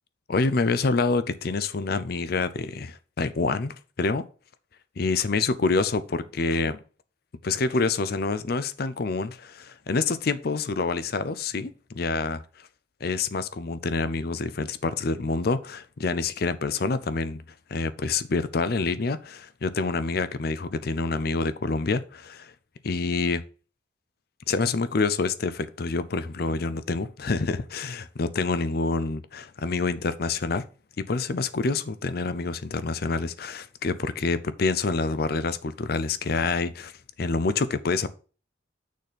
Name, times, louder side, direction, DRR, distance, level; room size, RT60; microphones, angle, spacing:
voice 1, 0.3-4.3 5.0-6.8 7.4-12.4 13.0-17.4 17.7-22.5 22.8-23.4 24.5-30.6 31.1-36.9 37.2-38.1, left 3 dB, 55° left, 0.5 m, -27 dB
6.5 x 4.2 x 5.0 m
head